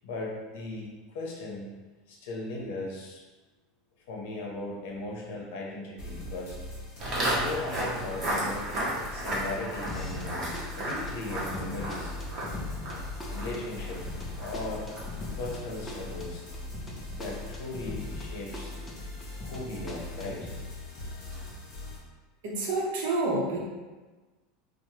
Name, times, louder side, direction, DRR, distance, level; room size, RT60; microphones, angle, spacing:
voice 1, 0.0-1.7 2.1-3.2 4.1-6.6 7.2-8.8 9.1-12.1 13.3-14.0 14.4-14.9 15.3-16.5 17.1-18.7 19.4-20.5, left 2 dB, 75° left, -2 dB, 0.7 m, -37 dB
sound 1, 6.0-22.0, left 2 dB, 50° left, 1.1 m, -41 dB
Walk footsteps, 7.0-16.2, right 1 dB, 30° right, 0.7 m, -34 dB
sound 2, 9.9-10.3 10.5-18.3 18.5-20.5, left 2 dB, 10° left, 0.4 m, -41 dB
voice 2, 22.4-23.6, right 2 dB, 75° right, -2 dB, 0.7 m, -28 dB
3.0 x 2.1 x 2.8 m, 1.2 s
supercardioid pair, 165°, 0 cm